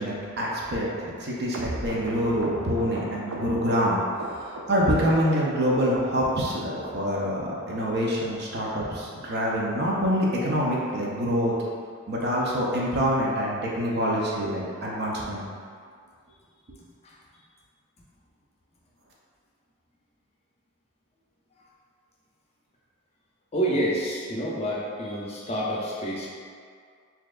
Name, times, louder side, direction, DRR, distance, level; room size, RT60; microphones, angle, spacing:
voice 1, 0.0-4.0 4.4-11.5 12.1-15.4, equal, 50° right, -4 dB, 0.6 m, -26 dB
sound 1, 1.5-4.8 5.1-5.7 6.0-6.5 6.8-6.9 7.2-7.4 7.7-7.8 8.1-8.3 8.6-8.7 9.0-9.2 9.5-9.6 9.8-10.0 10.4-10.5 10.7-10.9 11.3-11.4, right 2 dB, 90° right, 0.5 m, -37 dB
voice 2, 23.5-26.3, right 1 dB, 30° left, -5 dB, 0.5 m, -28 dB
4.2 x 2.8 x 2.4 m, 2.1 s
head